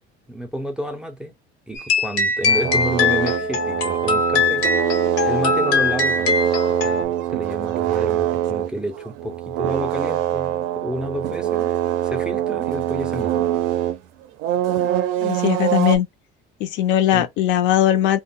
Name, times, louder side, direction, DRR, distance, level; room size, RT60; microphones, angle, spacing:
voice 1, 0.3-1.3 1.7-4.7 5.2-6.3 6.7-11.7 12.0-13.5 17.1-17.3, right 1 dB, 5° right, 0.3 m, -30 dB
sound 1, 1.7-7.0, left 4 dB, 90° left, 1.0 m, -21 dB
sound 2, 2.5-14.0 14.4-16.0, right 12 dB, 80° right, 0.4 m, -24 dB
voice 2, 15.2-16.1 16.6-18.2, left 11 dB, 70° left, 0.5 m, -19 dB
2.1 x 2.1 x 3.5 m
cardioid pair, 155°, 20 cm